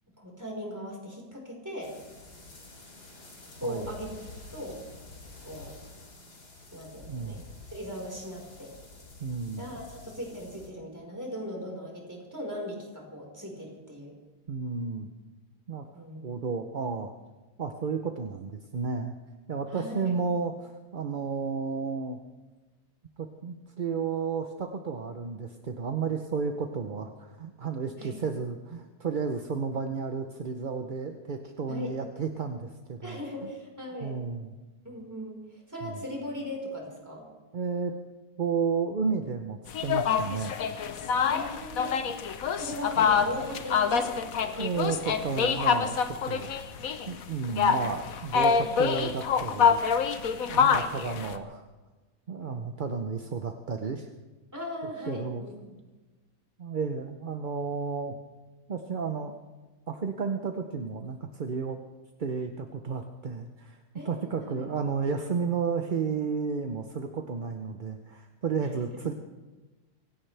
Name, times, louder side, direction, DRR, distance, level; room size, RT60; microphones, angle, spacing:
voice 1, 0.2-1.9 3.6-4.2 4.5-4.8 5.4-5.8 6.7-7.4 7.7-8.7 9.6-14.1 15.9-16.2 19.7-20.1 28.0-28.1 31.7-31.9 33.0-34.2 34.8-37.3 41.3-41.9 42.6-44.1 44.4-45.1 52.4-52.7 54.5-55.5 63.9-64.7, equal, 10° right, -1 dB, 4.6 m, -39 dB
sound 1, 1.8-10.7, left 3 dB, 85° left, 3.5 m, -49 dB
voice 2, 7.1-7.4 9.2-9.7 14.5-15.1 15.7-15.9 16.2-17.1 17.6-19.1 19.5-22.2 23.2-33.5 34.0-34.5 35.8-36.0 37.5-37.9 38.4-40.6 44.6-46.0 46.3-46.5 47.1-49.8 50.5-51.6 52.3-54.1 55.1-55.5 56.6-58.1 58.7-59.3 59.9-61.8 62.2-63.8 64.0-69.1, right 5 dB, 45° right, 5 dB, 0.7 m, -32 dB
sound 2, 39.7-51.4, left 6 dB, 65° left, 1.3 m, -26 dB
25.5 x 16.5 x 3.4 m, 1.2 s
omnidirectional pair, 1.7 m